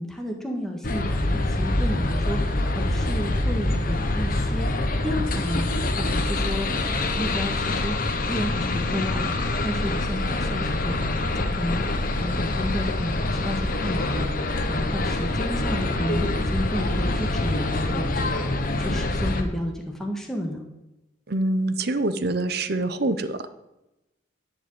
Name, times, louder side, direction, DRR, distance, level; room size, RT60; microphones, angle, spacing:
voice 1, 0.0-4.7 5.0-5.7 6.0-7.9 8.3-20.6, equal, 5° left, 0 dB, 1.7 m, -32 dB
sound 1, 0.8-19.4, left 2 dB, 50° left, 1.2 m, -25 dB
voice 2, 21.3-23.5, right 2 dB, 60° right, 12 dB, 0.9 m, -25 dB
11.5 x 5.2 x 8.8 m, 0.97 s
head